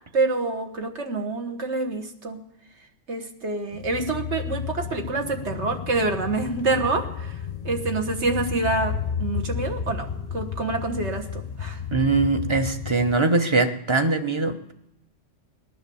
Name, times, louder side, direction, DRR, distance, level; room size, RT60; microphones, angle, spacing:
voice 1, 0.1-2.4 3.1-7.3 7.6-8.9 9.2-11.8, right 3 dB, 65° right, 5 dB, 1.7 m, -27 dB
sound 1, 3.7-13.2, left 7 dB, 40° left, 0.6 m, -32 dB
voice 2, 11.9-14.7, right 3 dB, 25° right, 7 dB, 0.9 m, -22 dB
18.5 x 10.5 x 7.0 m, 0.87 s
omnidirectional pair, 1.3 m